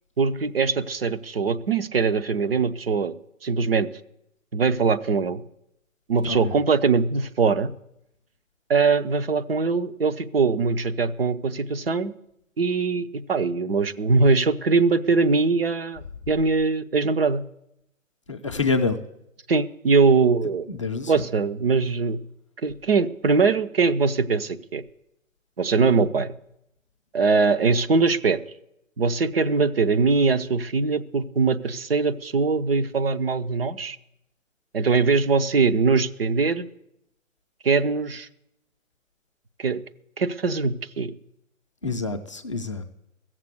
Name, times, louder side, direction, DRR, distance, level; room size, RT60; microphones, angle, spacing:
voice 1, 0.2-3.1 3.4-3.9 4.5-5.4 6.1-7.7 8.7-12.1 12.6-17.4 19.5-20.7 21.1-22.2 22.6-24.8 25.6-26.3 27.1-28.4 29.0-34.0 34.7-36.7 37.6-38.3 39.6-39.8 40.2-41.1, right 4 dB, 45° right, 10 dB, 0.7 m, -22 dB
voice 2, 18.3-19.0 20.7-21.1 41.8-42.9, left 4 dB, 25° left, 5 dB, 0.6 m, -27 dB
15.5 x 7.5 x 8.0 m, 0.79 s
figure-of-eight pair, 135°, 39 cm